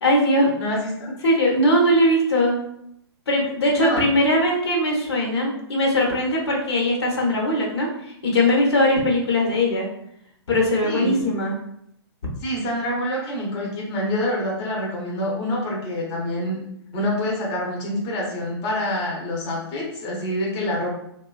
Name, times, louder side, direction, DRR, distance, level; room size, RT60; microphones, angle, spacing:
voice 1, 0.0-0.5 1.2-2.6 3.3-9.9 10.5-11.5, left 1 dB, 70° left, -2 dB, 0.9 m, -20 dB
voice 2, 0.6-1.1 3.8-4.0 10.8-11.2 12.4-16.6 16.9-21.0, left 1 dB, 30° left, -3 dB, 0.7 m, -26 dB
2.8 x 2.3 x 2.3 m, 0.75 s
hypercardioid pair, 125°, 14 cm